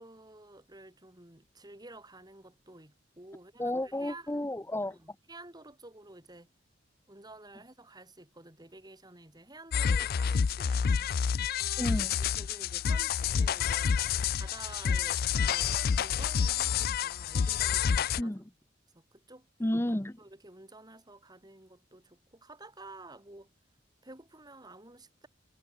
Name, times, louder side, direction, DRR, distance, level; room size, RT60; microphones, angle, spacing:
voice 1, 0.0-4.4 4.9-6.5 7.1-11.1 12.2-13.9 14.3-18.3 18.9-19.5 20.2-23.5 24.0-25.3, right 2 dB, 20° right, 5.4 m, -51 dB
voice 2, 3.6-5.0 11.8-12.2 18.2-18.4 19.6-20.2, left 1 dB, 15° left, 0.9 m, -31 dB
sound 1, 9.7-18.2, left 7 dB, 55° left, 0.4 m, -28 dB
head